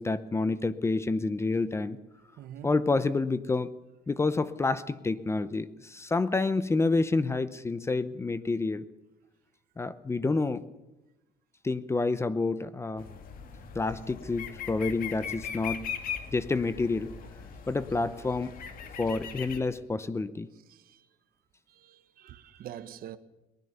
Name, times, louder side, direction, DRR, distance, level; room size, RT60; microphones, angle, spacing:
voice 1, 0.0-2.0 2.6-3.7 4.1-8.9 9.8-10.6 11.6-13.1 13.7-15.9 16.3-17.2 17.7-18.6 19.0-20.5, left 3 dB, 15° left, 0.7 m, -28 dB
voice 2, 2.4-2.7 20.7-21.0 21.7-23.2, right 11 dB, 65° right, 1.3 m, -45 dB
sound 1, 13.0-19.6, left 7 dB, 60° left, 2.3 m, -40 dB
21.5 x 19.5 x 7.0 m
cardioid pair, 145°, 16 cm